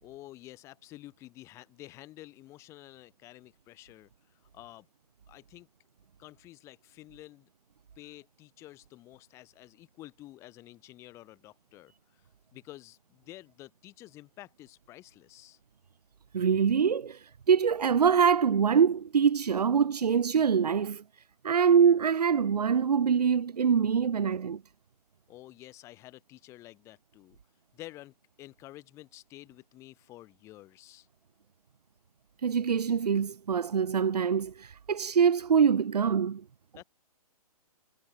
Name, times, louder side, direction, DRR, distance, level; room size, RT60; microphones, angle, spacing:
voice 1, 0.0-4.1 4.5-4.9 5.3-5.7 6.2-7.5 8.0-12.2 12.5-15.6 25.3-27.4 27.7-31.1 36.7-36.8, left 16 dB, 15° left, 3.6 m, -50 dB
voice 2, 16.3-17.2 17.5-21.0 21.4-24.6 32.4-36.4, right 7 dB, 85° right, 1.0 m, -24 dB
hypercardioid pair, 170°, 20 cm